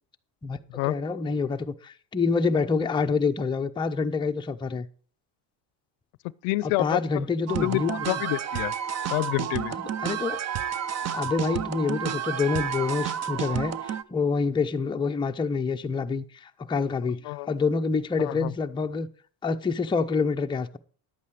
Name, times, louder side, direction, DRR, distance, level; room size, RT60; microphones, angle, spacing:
voice 1, 0.8-4.9 6.6-8.0 9.7-10.4 11.1-17.2 17.5-19.1 19.4-20.8, left 4 dB, 10° left, 0.5 m, -27 dB
voice 2, 6.4-7.0 7.5-8.7 9.1-9.7 17.2-17.5 18.2-18.5, left 21 dB, 75° left, 0.6 m, -28 dB
sound 1, 7.5-14.0, right 9 dB, 35° right, 0.6 m, -31 dB
11.0 x 8.4 x 4.9 m
supercardioid pair, 105°, 48 cm